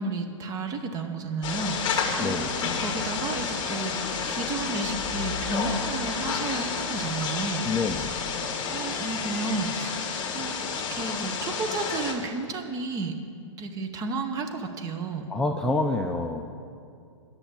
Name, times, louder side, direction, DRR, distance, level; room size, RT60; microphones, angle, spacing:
voice 1, 0.0-7.6 8.7-10.0 10.3-13.2 13.6-15.3, right 3 dB, 25° right, 6 dB, 0.9 m, -32 dB
sound 1, 1.4-12.1, left 5 dB, 30° left, 1.6 m, -30 dB
voice 2, 7.7-8.2 15.3-16.5, left 3 dB, 5° left, 2 dB, 0.3 m, -27 dB
9.9 x 6.7 x 8.6 m, 2.3 s
hypercardioid pair, 130°, 16 cm